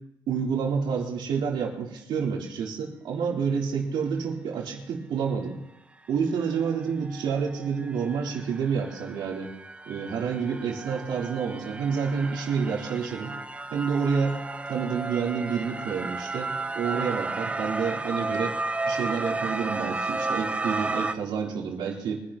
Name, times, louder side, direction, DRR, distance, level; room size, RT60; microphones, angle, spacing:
voice 1, 0.3-5.6 6.1-9.5 9.9-13.3 13.7-14.4 14.7-18.6 18.8-22.2, right 6 dB, 90° right, -2 dB, 3.7 m, -29 dB
sound 1, 6.6-6.7 7.1-21.1, right 3 dB, 15° right, 0.7 m, -33 dB
24.5 x 11.5 x 3.0 m, 0.87 s
cardioid pair, 115°, 8 cm